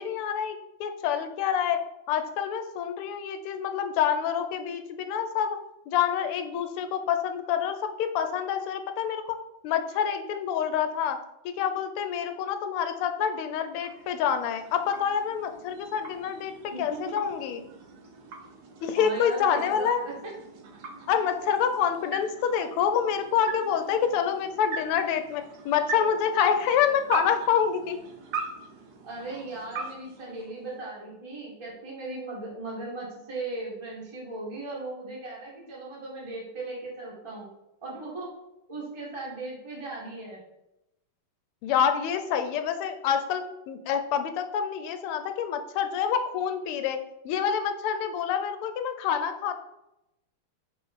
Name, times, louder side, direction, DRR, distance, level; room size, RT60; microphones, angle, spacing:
voice 1, 0.0-1.8 2.1-5.6 5.9-9.4 9.6-11.2 11.4-17.7 18.8-20.1 21.1-28.0 41.6-47.0 47.2-49.6, left 8 dB, 90° left, 8 dB, 1.5 m, -27 dB
sound 1, 13.3-31.0, right 4 dB, 60° right, 1.1 m, -42 dB
voice 2, 16.7-17.1 19.0-20.1 29.0-37.5 37.8-38.3 38.7-40.4, right 2 dB, 15° right, -5 dB, 1.4 m, -37 dB
5.0 x 4.9 x 4.1 m, 0.88 s
omnidirectional pair, 2.4 m